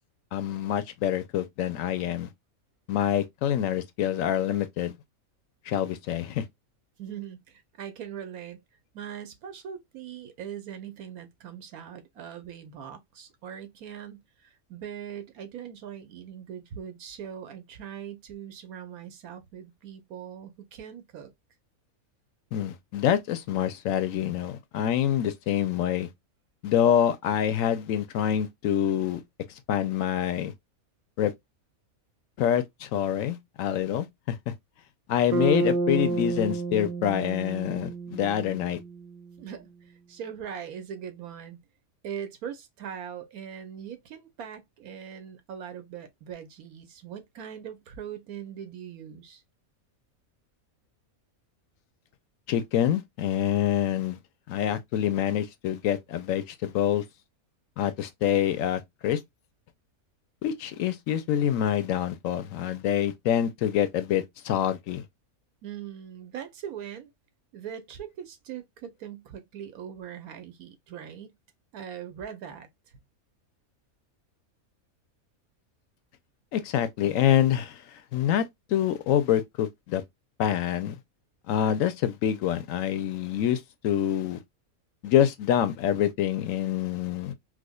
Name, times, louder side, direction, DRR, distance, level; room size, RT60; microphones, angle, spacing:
voice 1, 0.3-2.3 2.9-4.9 5.7-6.4 22.5-26.1 26.6-29.2 29.7-30.5 31.2-31.3 32.4-34.5 35.1-38.8 52.5-54.2 54.5-57.0 57.8-59.2 60.4-65.0 76.5-77.8 78.1-78.4 78.7-80.0 80.4-81.0 81.5-84.4 85.0-87.3, left 10 dB, 75° left, 0.9 m, -26 dB
voice 2, 7.0-8.6 8.9-21.3 39.4-41.6 42.0-49.4 65.6-67.1 67.5-71.3 71.7-72.7, right 9 dB, 90° right, 1.3 m, -41 dB
Bass guitar, 35.3-39.4, right 3 dB, 55° right, 1.0 m, -30 dB
4.8 x 2.2 x 2.2 m
omnidirectional pair, 1.5 m